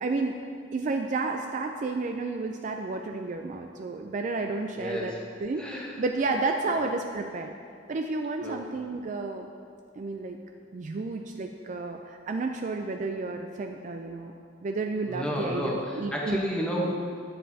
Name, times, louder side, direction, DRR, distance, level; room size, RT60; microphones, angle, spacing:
voice 1, 0.0-0.4 0.7-5.1 5.4-7.5 7.9-9.5 10.0-10.4 10.7-14.3 14.6-16.4, right 3 dB, 40° right, 4 dB, 0.3 m, -31 dB
voice 2, 4.7-5.2 5.6-6.0 6.7-6.8 8.4-8.6 15.1-17.2, equal, 5° left, -3 dB, 1.0 m, -31 dB
9.8 x 7.5 x 2.7 m, 2.3 s
head